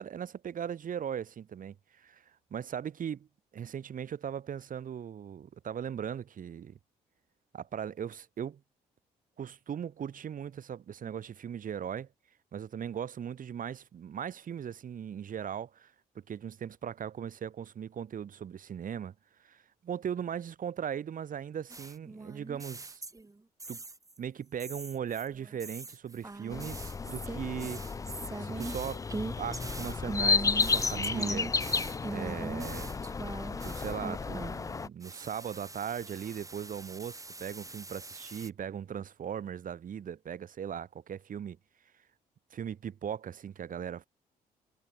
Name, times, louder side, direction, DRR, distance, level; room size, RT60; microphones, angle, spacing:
voice 1, 0.0-2.2 2.5-3.3 3.5-6.8 7.5-8.6 9.4-12.1 12.5-19.1 19.4-23.0 23.7-23.8 24.2-27.8 28.4-29.0 29.4-31.8 32.1-32.9 33.2-33.3 33.6-41.6 42.5-44.1, right 8 dB, 50° right, 1.3 m, -38 dB
sound 1, 21.7-23.3 23.6-24.2 24.6-34.7 35.0-38.5, right 2 dB, 20° right, 2.3 m, -41 dB
sound 2, 26.5-34.9, left 4 dB, 20° left, 0.4 m, -32 dB
hypercardioid pair, 55°, 18 cm